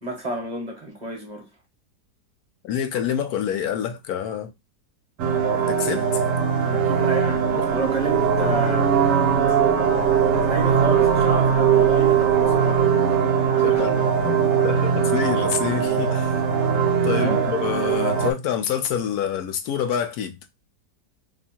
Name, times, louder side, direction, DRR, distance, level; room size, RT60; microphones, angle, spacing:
voice 1, 0.0-1.4 6.6-9.2 9.5-9.6 10.3-12.9 13.5-13.9 17.1-17.5, right 3 dB, 35° right, 0.8 m, -30 dB
voice 2, 2.6-4.5 5.7-6.2 7.5-7.7 13.6-16.4 17.0-20.4, left 8 dB, 70° left, 1.0 m, -27 dB
sound 1, 5.2-18.3, right 7 dB, 60° right, 1.0 m, -20 dB
2.8 x 2.7 x 4.3 m
omnidirectional pair, 1.8 m